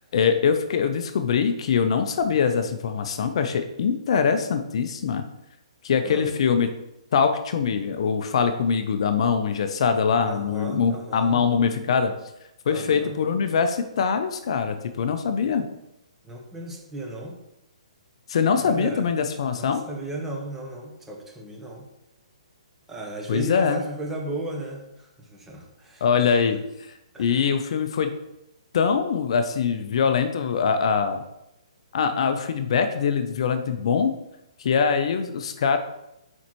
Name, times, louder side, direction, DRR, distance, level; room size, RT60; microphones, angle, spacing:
voice 1, 0.1-5.2 5.8-6.7 7.1-12.1 12.7-15.7 18.3-19.9 23.3-23.8 26.0-26.6 27.2-28.2 28.7-31.2 31.9-34.1 34.6-35.8, left 6 dB, 55° left, 8 dB, 0.4 m, -23 dB
voice 2, 6.0-6.3 10.2-11.5 12.7-13.2 16.2-17.4 18.6-19.1 19.5-21.9 22.9-26.0 27.1-27.4, right 1 dB, 10° right, 0 dB, 0.7 m, -35 dB
4.3 x 4.1 x 3.0 m, 0.87 s
hypercardioid pair, 150°, 4 cm